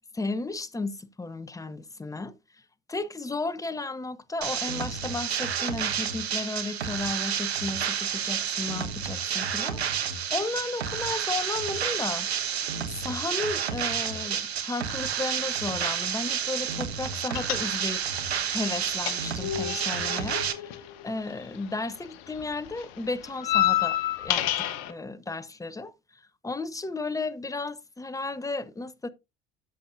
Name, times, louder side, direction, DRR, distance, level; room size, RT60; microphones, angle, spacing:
voice 1, 0.1-2.3 2.9-12.3 12.9-18.0 18.3-29.1, left 3 dB, 10° left, 0.8 m, -34 dB
sound 1, 4.4-20.5, right 8 dB, 80° right, 1.1 m, -30 dB
sound 2, 17.3-18.1 18.4-21.8 22.0-24.9, left 13 dB, 60° left, 1.1 m, -29 dB
12.5 x 7.1 x 2.6 m
figure-of-eight pair, 65°, 32 cm